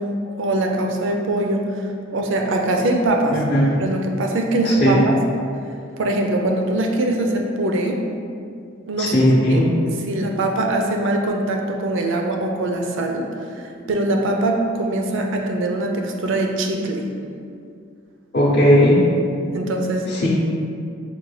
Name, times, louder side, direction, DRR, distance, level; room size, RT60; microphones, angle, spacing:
voice 1, 0.0-1.8 2.1-3.4 3.8-5.2 6.0-8.0 8.9-9.2 9.5-9.7 10.1-13.3 13.6-17.1 19.5-20.3, right 1 dB, 65° right, 2 dB, 0.5 m, -22 dB
voice 2, 3.3-3.7 4.6-5.0 9.0-9.7 18.3-19.0 20.1-20.3, equal, 50° left, -7 dB, 0.6 m, -16 dB
5.7 x 2.2 x 3.1 m, 2.4 s
head